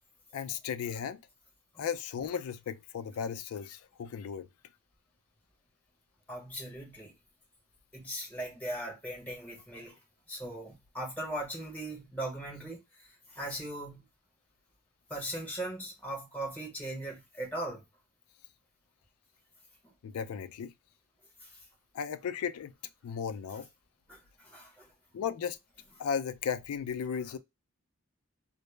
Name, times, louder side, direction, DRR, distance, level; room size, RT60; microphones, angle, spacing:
voice 1, 0.3-1.2 1.8-4.5 20.0-20.7 21.9-22.7 23.0-23.7 25.1-25.6 26.0-27.4, left 7 dB, 85° left, 0.3 m, -35 dB
voice 2, 6.3-7.1 7.9-10.0 10.3-14.0 15.1-17.8 19.8-19.9 21.4-21.7 23.5-23.6 24.1-24.9, right 1 dB, 5° left, 0.9 m, -39 dB
2.0 x 2.0 x 3.0 m
head